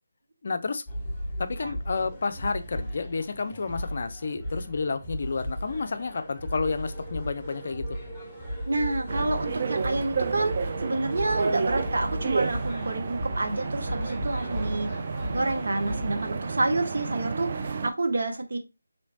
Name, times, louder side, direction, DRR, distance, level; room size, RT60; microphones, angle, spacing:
voice 1, 0.4-0.8 1.4-8.0, left 4 dB, 50° left, 0.4 m, -30 dB
sound 1, 0.9-16.3, equal, 5° left, 1.0 m, -36 dB
sound 2, 6.8-12.6, right 3 dB, 15° right, 0.8 m, -44 dB
voice 2, 8.7-14.9 15.3-18.6, right 2 dB, 60° right, 0.8 m, -29 dB
sound 3, 9.1-17.9, right 4 dB, 40° right, 0.4 m, -31 dB
3.2 x 3.0 x 2.7 m
figure-of-eight pair, 160°, 0 cm